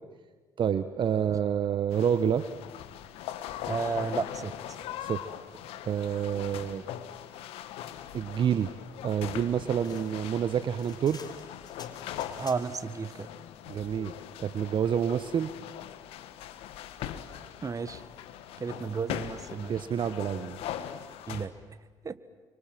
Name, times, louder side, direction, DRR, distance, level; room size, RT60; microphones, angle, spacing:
voice 1, 0.6-2.5 5.0-5.2 5.8-6.8 8.1-8.7 9.0-11.2 13.7-14.1 14.4-15.5 19.7-20.6, right 8 dB, 55° right, 11 dB, 1.1 m, -28 dB
sound 1, 1.9-21.5, left 11 dB, 75° left, 1.5 m, -41 dB
voice 2, 3.7-4.5 12.4-13.3 17.6-18.0 18.6-19.7 21.3-21.5 22.0-22.2, right 5 dB, 35° right, 13 dB, 1.6 m, -32 dB
sound 2, 9.8-12.9, left 5 dB, 45° left, 2.9 m, -51 dB
29.0 x 24.5 x 7.8 m, 1.4 s
hypercardioid pair, 55°, 10 cm